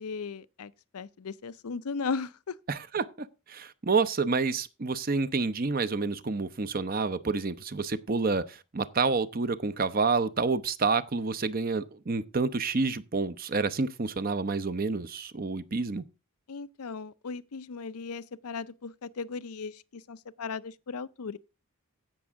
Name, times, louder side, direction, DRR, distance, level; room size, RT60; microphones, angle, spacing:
voice 1, 0.0-2.6 16.5-21.4, left 5 dB, 90° left, 0.6 m, -37 dB
voice 2, 2.7-16.0, right 4 dB, 40° right, 0.7 m, -29 dB
16.0 x 6.1 x 3.6 m
head